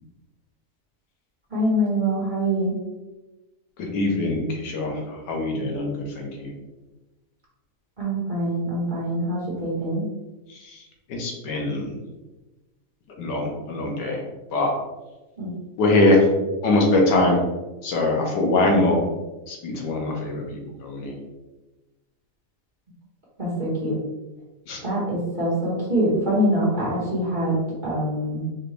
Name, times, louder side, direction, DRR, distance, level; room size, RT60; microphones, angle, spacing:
voice 1, 1.5-2.8 8.0-10.1 15.4-15.5 23.4-24.0 24.8-27.6 27.8-28.5, right 1 dB, 30° right, -7 dB, 1.3 m, -24 dB
voice 2, 3.8-6.5 10.5-10.8 11.1-12.0 13.2-14.2 14.5-14.7 15.8-16.3 16.6-17.4 17.8-19.0 19.5-21.1 24.7-24.8, left 2 dB, 90° left, 0 dB, 1.5 m, -22 dB
4.7 x 2.5 x 3.2 m, 1.1 s
omnidirectional pair, 1.8 m